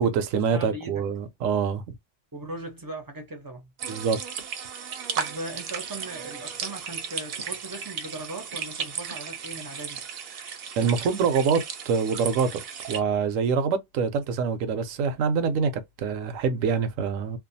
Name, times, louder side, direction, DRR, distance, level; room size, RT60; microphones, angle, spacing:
voice 1, 0.0-1.9 3.9-4.2 10.8-17.4, right 6 dB, 80° right, 1.0 m, -25 dB
voice 2, 0.5-1.0 2.3-3.7 5.2-10.0, right 2 dB, 30° right, 0.4 m, -38 dB
sound 1, 3.8-13.0, right 7 dB, 60° right, 0.7 m, -35 dB
2.5 x 2.2 x 2.6 m
omnidirectional pair, 1.3 m